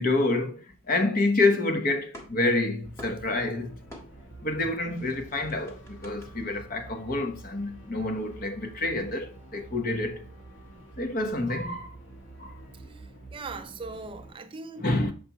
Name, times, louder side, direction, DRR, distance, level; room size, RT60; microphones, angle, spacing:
voice 1, 0.0-3.8 4.4-10.2 11.0-11.9 12.4-12.5 14.8-15.1, left 2 dB, 45° left, 1.0 m, -28 dB
sound 1, 0.7-1.7 1.9-4.5 4.7-6.3, left 1 dB, 15° left, 1.5 m, -49 dB
sound 2, 2.8-14.3, right 2 dB, 70° left, 2.1 m, -48 dB
voice 2, 12.7-14.9, right 3 dB, 25° right, 0.4 m, -41 dB
7.0 x 5.1 x 3.0 m
head